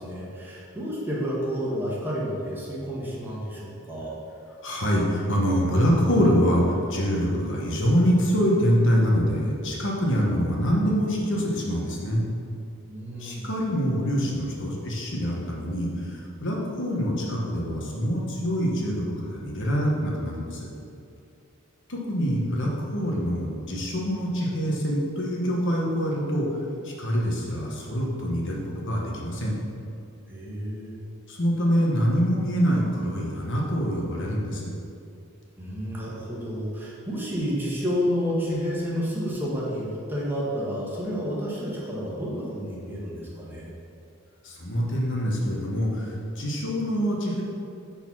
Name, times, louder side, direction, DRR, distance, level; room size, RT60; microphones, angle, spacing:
voice 1, 0.0-4.1 12.9-13.5 30.3-31.0 35.6-43.7, equal, 10° right, -6 dB, 1.3 m, -30 dB
voice 2, 4.6-12.2 13.2-20.7 21.9-26.5 26.8-29.5 31.3-34.7 44.4-47.4, equal, 60° left, -3 dB, 1.3 m, -25 dB
6.7 x 4.2 x 6.1 m, 2.5 s
head